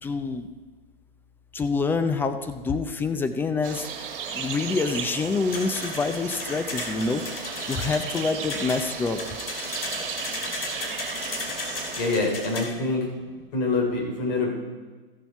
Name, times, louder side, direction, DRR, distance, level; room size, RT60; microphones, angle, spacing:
voice 1, 0.0-0.5 1.5-3.9 4.3-9.2, left 4 dB, 5° left, 9 dB, 0.5 m, -27 dB
sound 1, 3.6-12.2, right 7 dB, 60° right, 1.8 m, -35 dB
sound 2, 5.5-12.6, left 3 dB, 75° left, 2.5 m, -35 dB
voice 2, 12.0-13.1 13.5-14.5, left 3 dB, 45° left, 0 dB, 4.0 m, -25 dB
14.5 x 7.0 x 4.6 m, 1.3 s
hypercardioid pair, 125°, 29 cm